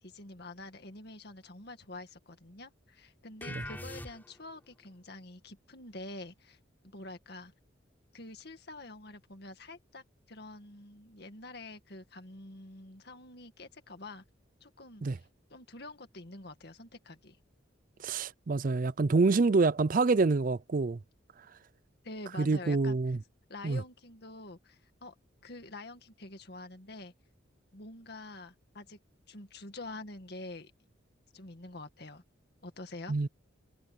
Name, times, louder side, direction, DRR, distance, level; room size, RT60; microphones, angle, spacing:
voice 1, 0.0-6.6 6.8-7.5 8.1-14.2 14.6-17.4 22.0-23.2 23.5-25.1 25.4-27.1 27.7-29.0 29.3-30.7 31.3-32.2 32.6-33.2, left 2 dB, 55° left, 2.1 m, -47 dB
sound 1, 3.4-4.6, left 1 dB, 10° left, 3.6 m, -42 dB
voice 2, 18.0-21.0 22.4-23.2 23.6-23.8 33.1-33.3, right 3 dB, 45° right, 0.5 m, -26 dB
head